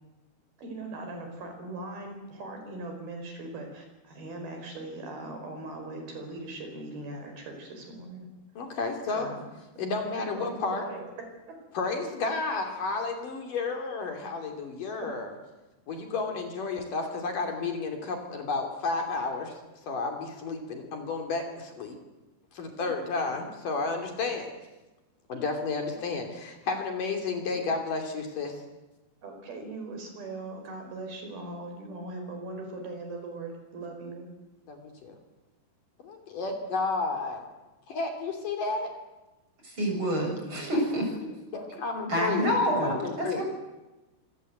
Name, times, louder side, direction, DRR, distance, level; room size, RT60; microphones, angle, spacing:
voice 1, 0.6-8.3 9.1-9.4 10.2-11.1 20.7-20.8 25.3-25.4 29.2-34.3, right 2 dB, 65° right, 4 dB, 6.6 m, -40 dB
voice 2, 8.6-9.3 9.8-10.8 11.7-15.3 15.9-19.6 19.9-22.0 22.5-24.5 25.3-28.6 34.7-35.1 36.0-37.5 37.9-38.9 41.5-42.6 43.0-43.4, left 4 dB, 55° left, 4 dB, 4.4 m, -32 dB
voice 3, 39.6-41.3 41.7-41.8 42.1-43.4, equal, 30° right, 1 dB, 8.0 m, -28 dB
26.0 x 24.0 x 8.1 m, 1.1 s
omnidirectional pair, 4.7 m